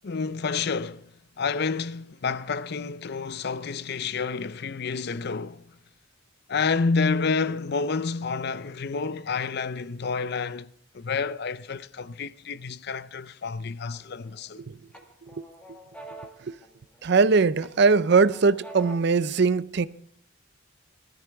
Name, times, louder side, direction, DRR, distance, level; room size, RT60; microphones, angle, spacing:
voice 1, 0.0-5.6 6.5-10.7 10.9-14.6, left 4 dB, 55° left, 0.5 m, -29 dB
sound 1, 13.9-14.5 14.9-17.2 17.6-19.2, right 2 dB, 5° left, 1.8 m, -46 dB
voice 2, 17.0-19.9, right 4 dB, 55° right, 0.5 m, -21 dB
19.0 x 13.5 x 3.5 m
head